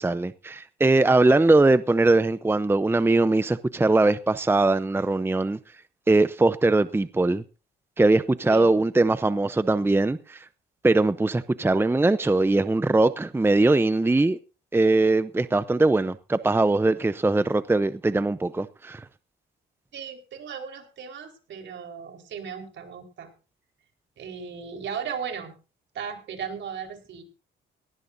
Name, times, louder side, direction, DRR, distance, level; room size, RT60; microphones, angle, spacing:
voice 1, 0.0-5.6 6.1-7.4 8.0-10.5 10.8-14.4 14.7-19.1, right 2 dB, 10° right, 0.7 m, -21 dB
voice 2, 19.9-23.3 24.2-25.5 25.9-27.2, right 7 dB, 70° right, 4.5 m, -36 dB
18.5 x 18.0 x 2.7 m
cardioid pair, 90°, 20 cm